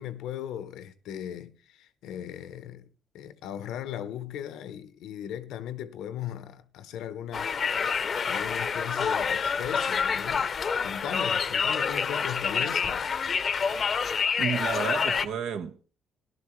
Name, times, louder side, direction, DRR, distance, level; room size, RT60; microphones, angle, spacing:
voice 1, 0.0-2.9 3.1-7.7 8.2-10.5 10.8-13.1, left 10 dB, 90° left, 0.8 m, -38 dB
Conversation, 7.3-15.3, left 6 dB, 50° left, 0.6 m, -27 dB
voice 2, 14.4-15.9, right 7 dB, 85° right, 1.0 m, -32 dB
14.0 x 11.0 x 3.1 m
cardioid pair, 90°, 0 cm